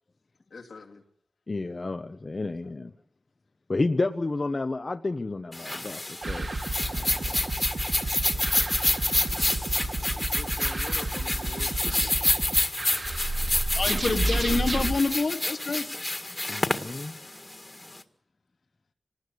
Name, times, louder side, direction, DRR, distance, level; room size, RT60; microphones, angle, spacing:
voice 1, 0.5-1.0 10.0-12.2 16.9-17.3, left 4 dB, 90° left, 2 dB, 2.9 m, -45 dB
voice 2, 1.5-2.9 3.7-6.5 6.9-7.5 16.5-17.2, left 3 dB, 40° left, 7 dB, 0.9 m, -31 dB
sound 1, 5.5-18.0, left 2 dB, 25° left, 1.8 m, -28 dB
sound 2, 6.2-14.9, right 2 dB, 55° right, 2.7 m, -31 dB
voice 3, 13.7-15.9, left 3 dB, 65° left, 6 dB, 2.1 m, -27 dB
26.5 x 19.5 x 8.1 m, 0.73 s
wide cardioid pair, 95°, 0 cm